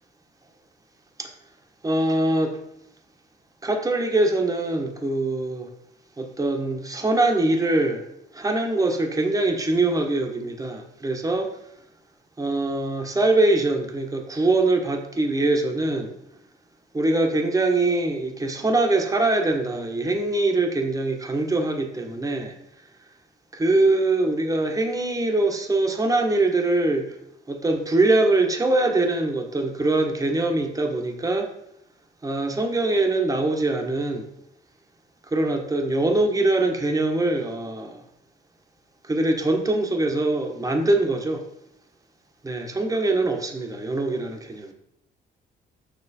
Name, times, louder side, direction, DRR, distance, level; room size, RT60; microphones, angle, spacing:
voice 1, 1.8-2.6 3.6-5.7 6.2-8.0 8.3-11.5 12.4-16.1 16.9-22.5 23.5-27.1 27.5-31.5 32.2-34.3 35.3-38.0 39.1-41.5 42.4-44.7, right 2 dB, 15° right, 3 dB, 1.3 m, -23 dB
6.8 x 6.0 x 4.3 m, 0.81 s
cardioid pair, 90°, 20 cm